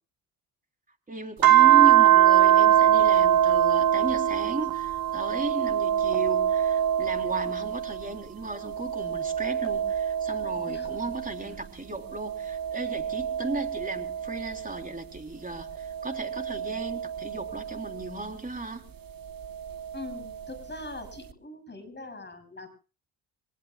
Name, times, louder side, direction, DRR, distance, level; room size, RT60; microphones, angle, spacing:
voice 1, 1.1-18.9, right 2 dB, 20° right, 5 dB, 3.6 m, -35 dB
sound 1, 1.4-8.1 8.6-11.5 12.1-14.9 15.6-18.1 19.4-20.5, right 10 dB, 50° right, 1.7 m, -24 dB
voice 2, 19.9-22.7, left 2 dB, 25° left, 6 dB, 7.3 m, -42 dB
26.0 x 19.5 x 2.4 m, 0.35 s
hypercardioid pair, 55°, 45 cm